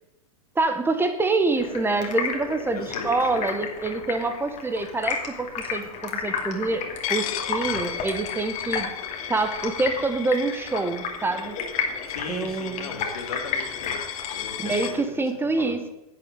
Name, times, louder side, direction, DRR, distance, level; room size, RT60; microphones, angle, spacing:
voice 1, 0.5-8.9 9.3-11.6 12.3-12.9 14.6-15.9, right 3 dB, 10° right, 9 dB, 1.2 m, -26 dB
Stream, 1.6-15.0, left 6 dB, 40° left, 2.6 m, -33 dB
voice 2, 2.7-3.4 12.1-14.1 14.3-15.2 15.6-15.8, left 5 dB, 85° left, 3 dB, 2.6 m, -37 dB
Coin (dropping), 7.0-14.9, left 10 dB, 65° left, 1.2 m, -35 dB
11.5 x 6.6 x 8.1 m, 0.93 s
hypercardioid pair, 110°, 19 cm